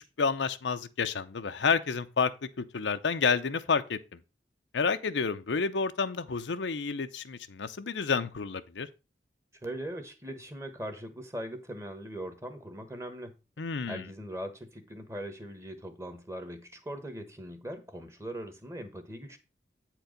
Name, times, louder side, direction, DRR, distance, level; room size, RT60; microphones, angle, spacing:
voice 1, 0.2-2.3 2.6-4.0 4.7-8.9 13.6-14.1, left 5 dB, 90° left, 0.6 m, -29 dB
voice 2, 9.6-13.3 13.9-19.4, right 1 dB, 15° right, 1.2 m, -40 dB
8.7 x 4.6 x 5.2 m
head